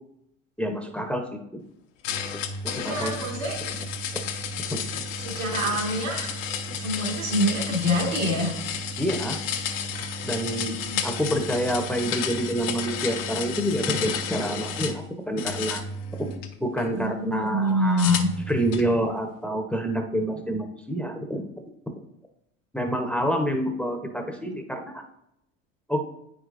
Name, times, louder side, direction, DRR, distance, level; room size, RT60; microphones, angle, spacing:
voice 1, 0.6-1.2 1.5-1.6 2.6-3.2 4.7-4.8 9.0-9.4 10.2-10.8 11.0-15.8 16.2-16.3 16.6-21.5 22.7-25.0 25.9-26.0, equal, 5° left, 4 dB, 0.8 m, -27 dB
sound 1, 2.0-15.0 15.4-16.9 18.0-18.9, left 5 dB, 65° left, 0.9 m, -32 dB
voice 2, 2.8-3.6 5.2-6.3 6.7-8.5 10.9-11.0 16.9-18.3, equal, 80° right, -3 dB, 2.2 m, -26 dB
9.0 x 5.0 x 2.5 m, 0.78 s
hypercardioid pair, 75°, 40 cm